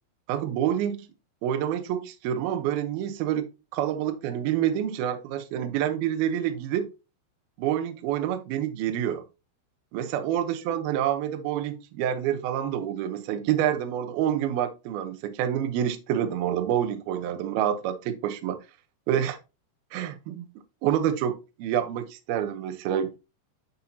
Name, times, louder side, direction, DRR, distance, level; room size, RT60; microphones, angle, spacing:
voice 1, 0.3-1.0 1.4-6.9 7.6-9.2 9.9-18.6 19.1-19.4 19.9-20.5 20.8-23.2, right 10 dB, 80° right, 2.2 m, -27 dB
10.5 x 6.0 x 2.8 m
omnidirectional pair, 5.7 m